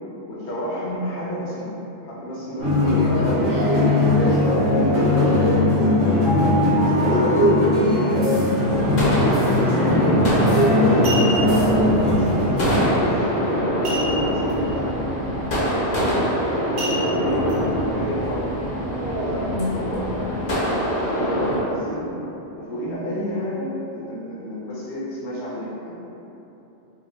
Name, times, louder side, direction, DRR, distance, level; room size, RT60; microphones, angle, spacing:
voice 1, 0.3-1.7 2.0-3.6 4.0-8.6 9.3-10.3 10.9-11.2 11.7-15.0 15.9-16.1 17.0-18.5 18.9-20.2 20.6-22.2 22.6-25.7, equal, 70° left, -6 dB, 1.0 m, -29 dB
sound 1, 2.6-12.9, left 1 dB, 85° right, 1.4 m, -19 dB
sound 2, 8.6-21.6, equal, 50° left, 0.6 m, -24 dB
sound 3, 10.4-10.5 10.8-11.6 13.8-14.5 14.8-14.9 15.4-15.7 16.8-17.6 18.1-18.2, equal, 60° right, 0.9 m, -30 dB
4.0 x 2.1 x 2.8 m, 3.0 s
omnidirectional pair, 1.2 m